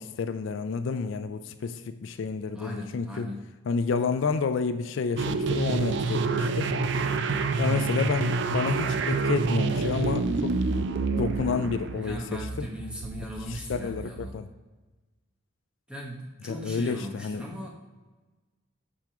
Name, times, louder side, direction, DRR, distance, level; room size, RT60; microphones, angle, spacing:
voice 1, 0.0-3.3 3.7-6.7 7.6-10.6 11.2-12.2 12.6-12.7 13.5-14.5 16.5-17.4, left 5 dB, 65° left, 10 dB, 0.3 m, -30 dB
voice 2, 2.4-3.5 11.9-14.4 15.9-17.7, equal, 5° right, -1 dB, 0.9 m, -39 dB
sound 1, 5.2-14.3, right 3 dB, 55° right, 0.4 m, -27 dB
7.6 x 3.6 x 5.8 m, 1.2 s
head